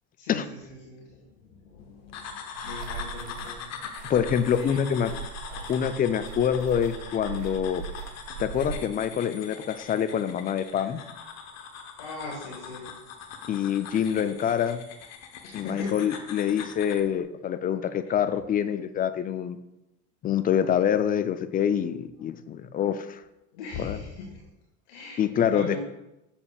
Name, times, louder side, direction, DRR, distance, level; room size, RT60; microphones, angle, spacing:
voice 1, 0.2-3.8 4.6-5.0 5.5-5.7 12.0-12.9 15.4-16.1 23.5-24.4 24.9-25.8, left 4 dB, 70° left, -2 dB, 1.6 m, -39 dB
sound 1, 2.1-17.1, left 6 dB, 45° left, 0.9 m, -42 dB
sound 2, 2.5-8.8, right 6 dB, 90° right, 1.3 m, -40 dB
voice 2, 4.1-5.1 5.7-7.9 8.4-11.0 13.5-14.8 15.5-19.6 20.2-23.2 23.8-24.0 25.2-25.8, left 9 dB, 25° left, 12 dB, 0.3 m, -26 dB
7.1 x 6.8 x 2.3 m, 0.92 s
hypercardioid pair, 85°, 36 cm